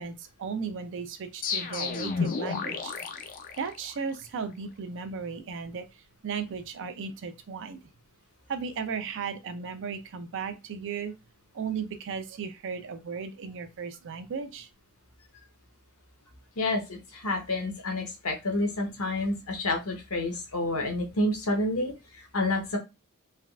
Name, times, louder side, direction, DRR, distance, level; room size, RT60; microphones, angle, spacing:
voice 1, 0.0-2.9 3.6-5.9 6.2-7.8 8.5-11.1 11.5-14.7, right 5 dB, 60° right, 10 dB, 0.4 m, -35 dB
sound 1, 1.4-4.2, left 5 dB, 40° left, 0.4 m, -32 dB
voice 2, 16.6-22.8, left 2 dB, 70° left, 3 dB, 0.9 m, -29 dB
3.4 x 2.3 x 2.3 m, 0.25 s
head